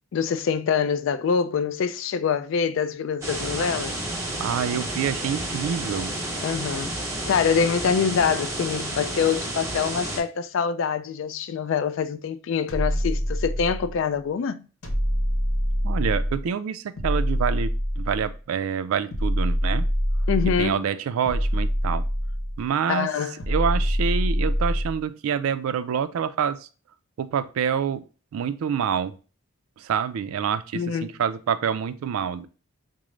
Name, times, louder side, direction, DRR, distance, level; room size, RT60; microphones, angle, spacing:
voice 1, 0.1-3.9 6.4-6.9 7.3-14.6 20.3-20.9 22.9-23.4 30.7-31.1, left 6 dB, 60° left, 0.3 m, -25 dB
sound 1, 3.2-10.2, right 1 dB, 15° right, 0.8 m, -31 dB
voice 2, 4.4-6.1 15.8-19.9 20.6-22.0 22.6-23.1 23.5-26.6 27.2-28.0 28.3-29.2 29.8-32.5, right 7 dB, 80° right, 0.3 m, -27 dB
sound 2, 12.7-14.0 14.8-16.5 17.0-18.4 19.1-20.7 21.2-22.6 23.4-25.0, equal, 90° left, 0.9 m, -25 dB
4.9 x 2.0 x 3.1 m
head